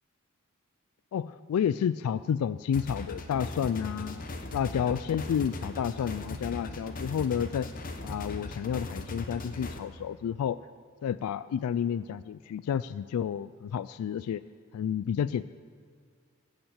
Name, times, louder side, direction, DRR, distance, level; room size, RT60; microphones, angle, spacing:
voice 1, 1.1-4.2 4.5-7.7 8.0-10.6 11.0-14.4 14.7-15.4, left 8 dB, 85° left, 16 dB, 0.3 m, -30 dB
sound 1, 2.7-9.8, left 2 dB, 40° left, 0.8 m, -38 dB
15.0 x 6.0 x 7.3 m, 2.1 s
head